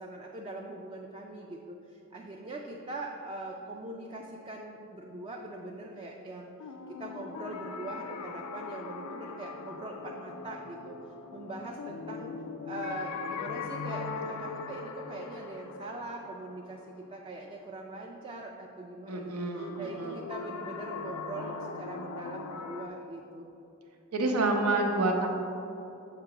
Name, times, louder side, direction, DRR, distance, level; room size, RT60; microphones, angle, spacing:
voice 1, 0.0-6.5 6.9-11.0 11.3-12.3 12.6-23.6, right 2 dB, 25° right, 0 dB, 0.3 m, -42 dB
sound 1, 6.6-17.5 19.6-22.9, left 5 dB, 85° left, 0.4 m, -40 dB
voice 2, 19.1-20.1 24.1-25.3, right 2 dB, 85° right, 2 dB, 0.8 m, -28 dB
6.8 x 2.9 x 5.8 m, 2.9 s
head